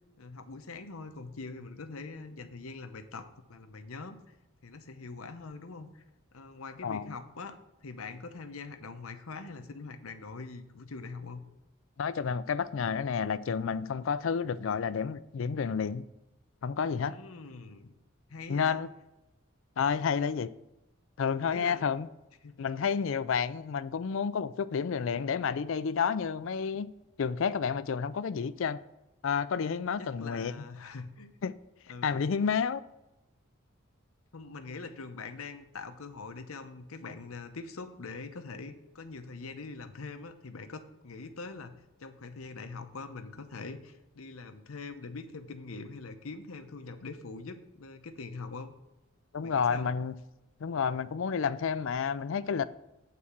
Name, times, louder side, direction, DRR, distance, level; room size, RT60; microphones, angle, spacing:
voice 1, 0.2-4.3 4.6-6.0 6.3-11.4 17.0-17.9 18.3-18.8 21.5-21.9 22.4-22.6 30.0-31.3 31.9-32.2 34.3-41.7 42.0-48.7 49.4-49.9, left 4 dB, 85° left, 0.8 m, -43 dB
voice 2, 6.8-7.1 12.0-16.0 16.6-17.2 18.5-18.9 19.8-20.5 21.2-22.1 22.6-26.9 27.2-28.8 29.2-30.6 31.4-31.5 32.0-32.8 49.3-50.1 50.6-52.7, left 6 dB, 65° left, 0.4 m, -30 dB
8.5 x 4.2 x 7.2 m
head